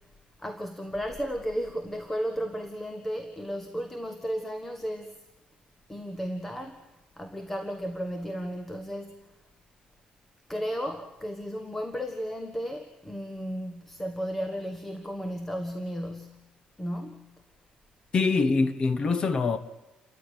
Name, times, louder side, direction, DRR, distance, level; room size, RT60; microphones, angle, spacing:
voice 1, 0.4-5.1 5.9-6.9 7.2-9.2 10.5-16.5 16.8-17.4, equal, 10° left, 1.4 m, -34 dB
voice 2, 18.1-19.6, left 4 dB, 30° left, 1.3 m, -24 dB
29.5 x 14.0 x 9.1 m
cardioid pair, 165°, 3 cm